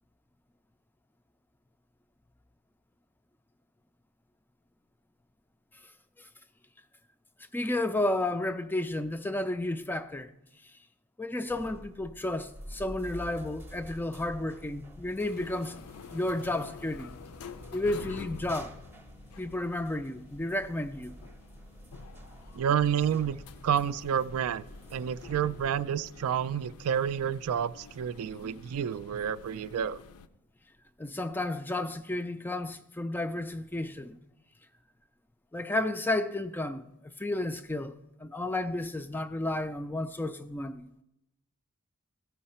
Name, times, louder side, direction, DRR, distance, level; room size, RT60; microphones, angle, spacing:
voice 1, 7.5-10.3 10.6-10.7 11.2-15.8 16.1-17.1 17.7-18.7 19.4-21.2 31.0-34.2 35.5-37.9 38.2-40.9, left 1 dB, 10° left, 0.3 m, -32 dB
sound 1, 11.5-25.7, right 1 dB, 10° right, 0.7 m, -49 dB
sound 2, 15.3-30.3, left 5 dB, 80° left, 0.4 m, -49 dB
voice 2, 22.5-23.4 23.6-24.6 24.9-30.0, right 8 dB, 75° right, 0.3 m, -29 dB
15.5 x 5.6 x 4.3 m
head